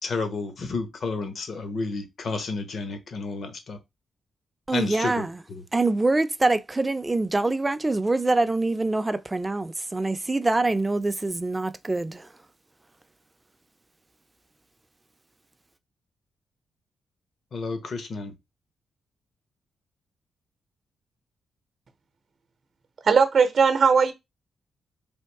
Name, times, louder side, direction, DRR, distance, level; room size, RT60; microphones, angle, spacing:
voice 1, 0.0-3.8 4.7-5.6 17.5-18.4, left 3 dB, 60° left, 1.1 m, -31 dB
voice 2, 4.7-5.4 5.7-12.3, right 2 dB, 20° right, 0.5 m, -25 dB
voice 3, 23.0-24.1, right 5 dB, 55° right, 0.7 m, -18 dB
3.5 x 2.6 x 4.6 m
cardioid pair, 70°, 0 cm